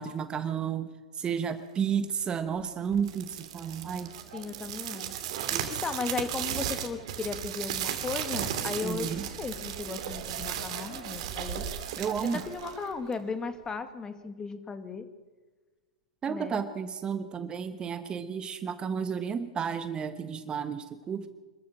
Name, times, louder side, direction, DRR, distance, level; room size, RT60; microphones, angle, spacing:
voice 1, 0.0-4.1 5.5-5.8 8.8-9.3 12.0-12.4 16.2-21.3, right 7 dB, 25° right, 11 dB, 1.4 m, -32 dB
sound 1, 2.9-13.3, right 10 dB, 60° right, 2.9 m, -35 dB
voice 2, 4.3-5.1 5.4-11.6 12.2-15.1 16.3-16.6, left 4 dB, 20° left, 9 dB, 2.2 m, -36 dB
26.0 x 14.0 x 7.5 m, 1.3 s
hypercardioid pair, 105°, 4 cm